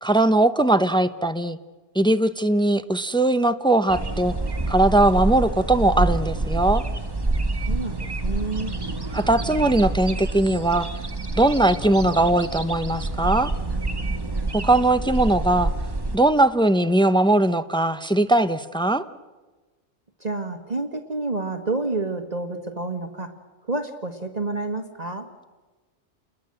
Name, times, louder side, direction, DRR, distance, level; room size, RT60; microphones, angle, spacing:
voice 1, 0.0-1.6 1.9-4.3 4.7-6.8 9.1-10.9 11.4-13.5 14.5-15.7 16.1-19.0, right 2 dB, 5° left, 10 dB, 0.6 m, -20 dB
sound 1, 3.9-16.2, right 2 dB, 20° right, 1.3 m, -27 dB
voice 2, 7.6-8.7 20.2-23.3 23.7-25.3, right 3 dB, 35° right, 5 dB, 1.5 m, -29 dB
29.0 x 21.0 x 7.8 m, 1.2 s
omnidirectional pair, 1.2 m